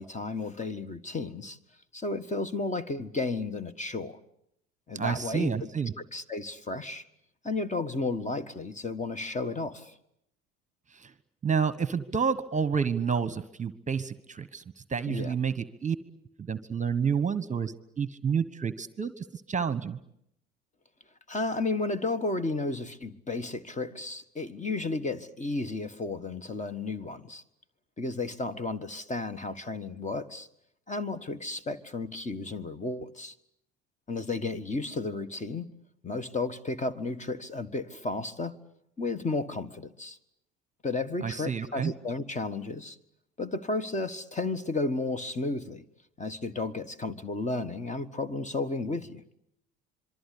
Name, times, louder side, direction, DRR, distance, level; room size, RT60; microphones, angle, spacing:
voice 1, 0.0-1.6 1.9-4.2 4.9-5.7 6.1-7.0 7.4-9.9 15.1-15.3 21.3-27.4 28.0-30.5 30.9-33.3 34.1-35.7 36.0-38.6 39.0-40.2 40.8-43.0 43.4-45.8 46.2-49.2, left 3 dB, 20° left, 13 dB, 1.6 m, -33 dB
voice 2, 4.9-5.9 10.9-11.1 11.4-14.6 14.9-16.0 16.5-20.0 41.2-41.9, right 6 dB, 25° right, 15 dB, 1.3 m, -29 dB
26.0 x 23.5 x 8.5 m, 0.77 s
hypercardioid pair, 70°, 33 cm